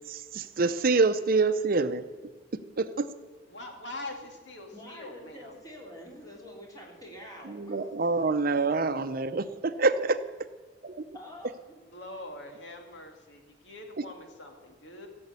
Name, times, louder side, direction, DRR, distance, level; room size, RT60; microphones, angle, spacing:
voice 1, 0.1-2.0 2.8-3.1 7.5-10.2 10.8-11.1 14.0-14.1, right 3 dB, 50° right, 11 dB, 0.6 m, -26 dB
voice 2, 3.5-5.5 11.9-15.1, left 2 dB, 80° left, 3 dB, 2.3 m, -43 dB
voice 3, 4.7-8.1 11.1-11.7, equal, 20° left, -1 dB, 3.3 m, -46 dB
16.0 x 7.8 x 8.3 m, 1.3 s
head